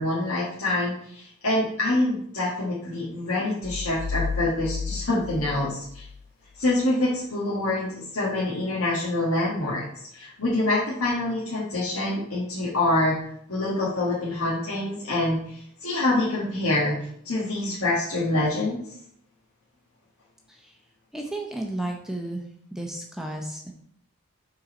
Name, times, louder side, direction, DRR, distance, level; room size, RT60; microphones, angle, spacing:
voice 1, 0.0-6.0 6.6-9.9 10.1-13.2 13.5-16.9 17.2-18.8, left 2 dB, 80° left, -7 dB, 1.5 m, -26 dB
sound 1, 3.6-6.3, left 5 dB, 45° left, 0.3 m, -32 dB
voice 2, 21.1-22.5 22.7-23.7, right 1 dB, ahead, 0 dB, 0.6 m, -33 dB
5.5 x 3.9 x 5.2 m, 0.68 s
head